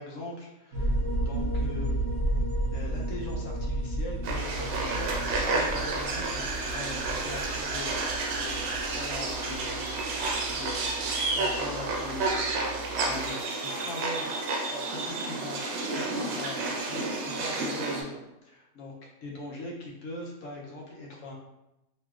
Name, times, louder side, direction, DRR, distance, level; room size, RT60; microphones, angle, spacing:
voice 1, 0.0-1.9 2.7-10.2 10.5-10.9 11.3-12.8 13.0-13.3 13.6-14.3 14.7-15.6 15.9-18.9 19.2-21.3, left 1 dB, 65° left, -2 dB, 0.8 m, -41 dB
sound 1, 0.7-13.3, right 1 dB, 55° right, 0.9 m, -33 dB
sound 2, 4.2-18.0, right 3 dB, 85° right, 1.2 m, -31 dB
3.1 x 3.0 x 2.2 m, 0.92 s
omnidirectional pair, 1.8 m